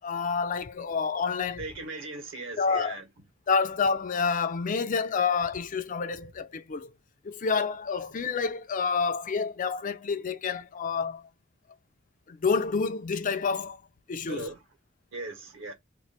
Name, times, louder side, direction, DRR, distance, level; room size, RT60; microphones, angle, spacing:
voice 1, 0.0-1.6 2.6-2.9 3.5-6.9 7.2-11.2 12.3-13.8 14.1-14.5, left 5 dB, 40° left, 0.4 m, -28 dB
voice 2, 1.6-3.1 14.3-14.6 15.1-15.7, right 2 dB, 65° right, 1.4 m, -38 dB
3.0 x 2.5 x 4.2 m
head